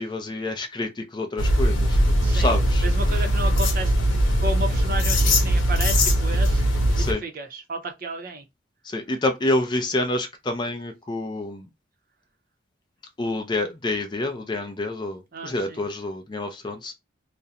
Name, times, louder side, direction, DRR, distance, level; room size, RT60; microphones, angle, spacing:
voice 1, 0.0-2.0 2.3-2.8 7.0-7.2 8.8-11.7 13.2-16.9, left 2 dB, 25° left, 0.4 m, -28 dB
sound 1, 1.4-7.1, equal, 85° left, 0.7 m, -20 dB
voice 2, 2.2-3.9 4.4-6.6 7.0-8.4 15.3-15.9, right 1 dB, 45° right, 0.5 m, -33 dB
2.4 x 2.0 x 2.7 m
head